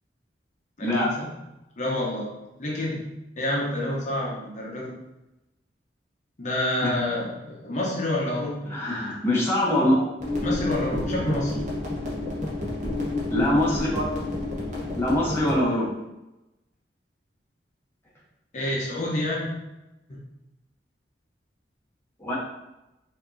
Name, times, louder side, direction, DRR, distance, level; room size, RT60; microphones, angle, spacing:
voice 1, 0.8-1.3 1.8-3.1 3.4-5.0 6.4-8.7 10.4-11.7 18.5-19.5, left 1 dB, 45° left, -4 dB, 0.9 m, -28 dB
voice 2, 8.7-10.0 13.3-14.1 14.9-15.9 22.2-22.4, left 1 dB, 15° left, -6 dB, 0.9 m, -23 dB
sound 1, 10.2-15.6, left 2 dB, 45° right, 1.2 m, -29 dB
4.8 x 2.9 x 2.7 m, 0.95 s
head